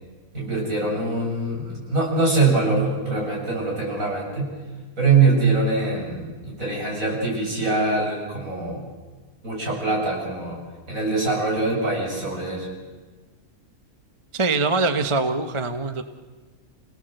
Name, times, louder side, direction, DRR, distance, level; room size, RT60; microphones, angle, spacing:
voice 1, 0.3-4.5 5.0-8.8 9.4-10.6 10.9-12.7, right 3 dB, 65° right, -2 dB, 7.9 m, -23 dB
voice 2, 14.3-16.0, right 3 dB, 25° right, 8 dB, 1.0 m, -23 dB
28.5 x 18.0 x 7.9 m, 1.3 s
omnidirectional pair, 1.5 m